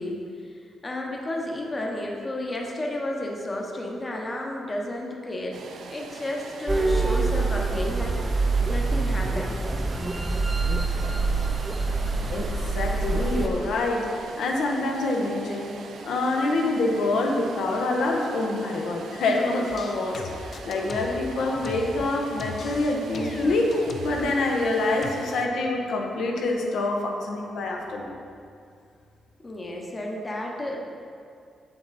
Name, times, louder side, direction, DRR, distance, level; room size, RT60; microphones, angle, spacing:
voice 1, 0.0-5.6 5.9-8.2 8.7-9.6 29.4-30.8, left 1 dB, 20° left, -1 dB, 0.9 m, -32 dB
sound 1, 5.5-25.5, right 5 dB, 70° right, 0.5 m, -42 dB
sound 2, 6.7-13.5, right 3 dB, 15° right, 0.5 m, -25 dB
voice 2, 12.3-15.7 16.0-23.7 24.0-28.1, left 2 dB, 80° left, 0 dB, 1.0 m, -26 dB
sound 3, 19.7-22.1 22.4-24.3 25.0-25.1, left 3 dB, 45° left, 0.6 m, -38 dB
7.2 x 7.1 x 4.1 m, 2.3 s
wide cardioid pair, 145°, 0 cm